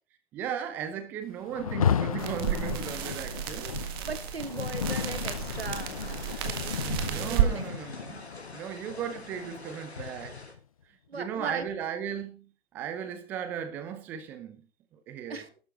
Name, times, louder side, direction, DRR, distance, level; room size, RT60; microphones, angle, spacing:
voice 1, 0.3-3.8 7.1-8.3 8.5-10.4 11.1-14.7 14.9-15.4, right 8 dB, 5° right, 0.6 m, -36 dB
Rain, 1.5-10.6, left 8 dB, 30° left, 0.7 m, -34 dB
sound 1, 2.2-7.5, right 10 dB, 20° right, 1.7 m, -32 dB
voice 2, 4.0-6.0 6.4-6.8 7.2-7.6 11.1-11.7 15.3-15.5, right 4 dB, 65° right, 2.0 m, -38 dB
sound 2, 4.9-10.5, left 2 dB, 75° left, 4.2 m, -46 dB
12.5 x 12.5 x 4.1 m
figure-of-eight pair, 140°, 33 cm